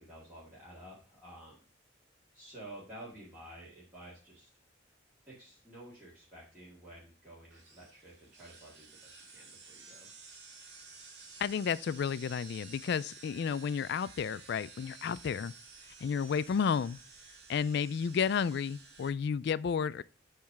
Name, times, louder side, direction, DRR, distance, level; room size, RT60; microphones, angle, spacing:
voice 1, 0.0-1.6 2.3-4.5 5.3-10.1, right 1 dB, 10° right, 2.1 m, -51 dB
sound 1, 7.5-19.1, right 4 dB, 60° right, 1.7 m, -53 dB
voice 2, 11.4-15.5 16.0-17.0 17.5-20.0, left 6 dB, 55° left, 0.3 m, -32 dB
8.5 x 3.2 x 5.9 m
head